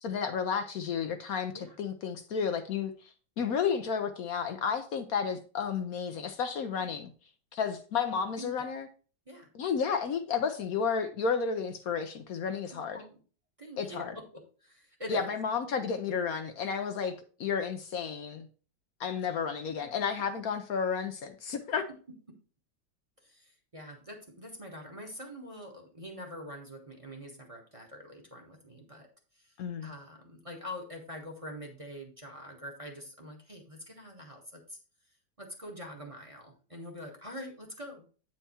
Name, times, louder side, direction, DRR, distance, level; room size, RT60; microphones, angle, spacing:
voice 1, 0.0-3.1 3.4-7.1 7.5-8.9 9.5-13.0 13.8-14.1 15.1-17.1 17.4-18.5 19.0-21.8 29.6-29.9, left 6 dB, 65° left, 7 dB, 1.1 m, -32 dB
voice 2, 8.1-8.7 9.3-9.5 12.7-13.2 13.6-15.3 19.8-19.9 22.3-22.4 23.2-29.1 29.3-34.8 35.4-38.1, left 1 dB, 20° right, 2 dB, 1.2 m, -45 dB
8.7 x 4.5 x 4.3 m, 0.38 s
omnidirectional pair, 1.8 m